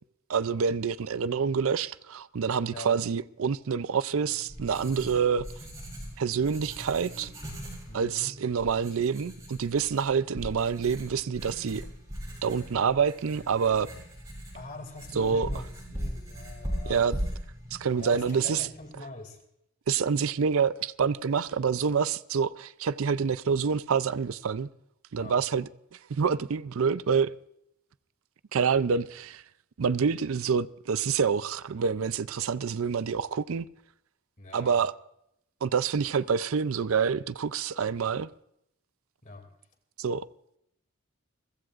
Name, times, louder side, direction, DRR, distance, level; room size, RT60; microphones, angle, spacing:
voice 1, 0.3-5.4 6.2-7.3 7.9-11.9 12.4-13.9 15.2-15.5 16.8-17.2 17.7-18.7 19.9-24.7 25.1-27.3 28.5-29.4 29.8-33.7 34.5-34.9 35.6-38.3 40.0-40.3, right 6 dB, 65° right, 0.5 m, -27 dB
Writing, 4.1-18.9, equal, 15° right, 7.3 m, -40 dB
voice 2, 7.9-8.4 14.5-17.0 18.0-19.4 25.2-25.3 34.4-34.8 39.2-39.5, left 2 dB, 35° left, 2.6 m, -43 dB
29.0 x 15.5 x 2.5 m
head